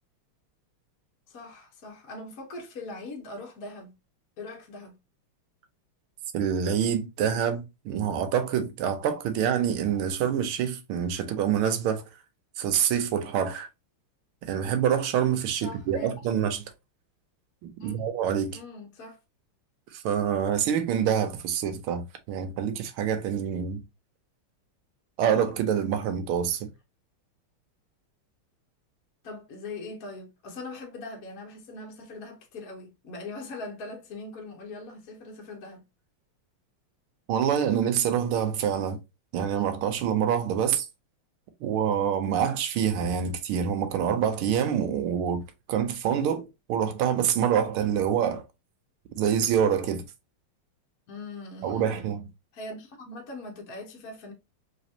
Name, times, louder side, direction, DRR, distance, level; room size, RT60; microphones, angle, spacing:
voice 1, 1.3-3.9 4.4-5.0 15.6-16.5 17.8-17.9 18.5-19.2 29.2-35.8 51.1-52.2 52.5-54.3, left 2 dB, 50° left, 1.2 m, -41 dB
voice 2, 6.3-12.0 12.6-13.7 14.4-16.6 17.6-18.6 19.9-23.8 25.2-26.7 37.3-39.0 39.3-40.9 41.6-45.4 45.7-48.4 49.2-50.0 51.6-52.2, right 8 dB, 80° right, 1.5 m, -26 dB
4.0 x 3.2 x 2.7 m
omnidirectional pair, 2.4 m